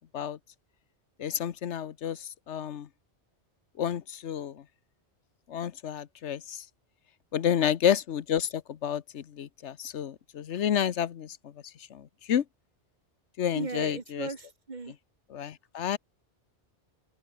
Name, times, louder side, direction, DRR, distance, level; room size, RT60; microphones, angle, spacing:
voice 1, 1.2-2.9 3.8-4.6 5.5-6.6 7.3-11.5 11.9-12.4 13.4-14.3 14.9-15.0 15.3-16.0, left 9 dB, 90° left, 1.2 m, -30 dB
voice 2, 13.5-14.9, right 4 dB, 40° right, 1.7 m, -37 dB
omnidirectional pair, 1.2 m